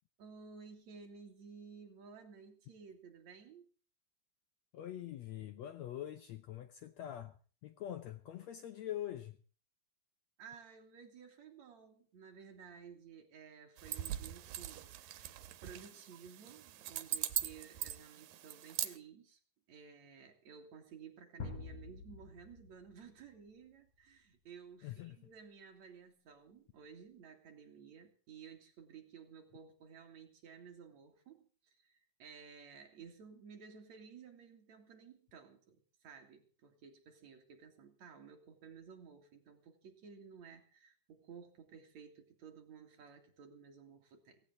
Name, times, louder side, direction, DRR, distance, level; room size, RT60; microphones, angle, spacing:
voice 1, 0.2-3.7 10.4-15.3 15.6-19.4 19.7-44.4, right 6 dB, 55° right, 3.5 m, -55 dB
voice 2, 4.7-7.4 7.6-9.4 24.8-25.2, left 11 dB, 70° left, 1.8 m, -44 dB
sound 1, 13.8-19.0, right 12 dB, 90° right, 2.7 m, -41 dB
sound 2, 21.4-23.4, left 4 dB, 50° left, 3.4 m, -47 dB
17.0 x 17.0 x 3.9 m
omnidirectional pair, 3.9 m